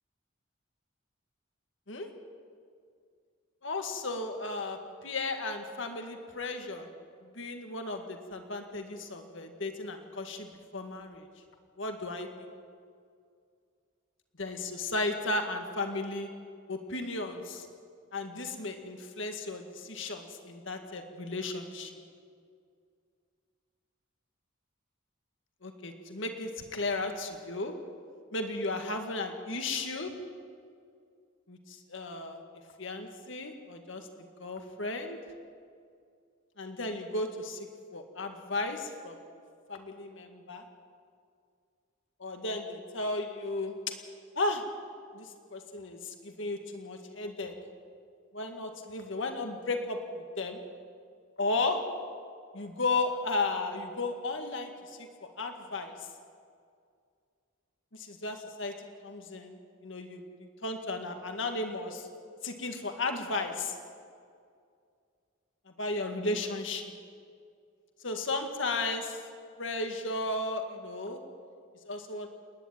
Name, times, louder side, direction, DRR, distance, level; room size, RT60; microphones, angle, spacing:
voice 1, 3.6-6.9 7.4-11.3 11.8-12.5 14.4-16.3 16.7-17.7 18.1-22.0 25.6-27.7 28.3-30.1 31.5-32.4 32.8-34.1 34.4-35.2 36.6-37.7 37.9-39.2 39.7-40.6 42.2-43.7 44.4-44.6 45.1-47.5 48.3-50.6 51.4-51.8 52.5-55.1 55.4-55.9 57.9-58.7 59.0-62.1 62.4-63.7 65.8-66.9 68.0-69.2 69.6-71.2 71.8-72.3, left 2 dB, 65° left, 5 dB, 2.0 m, -34 dB
29.5 x 10.5 x 9.2 m, 2.3 s
head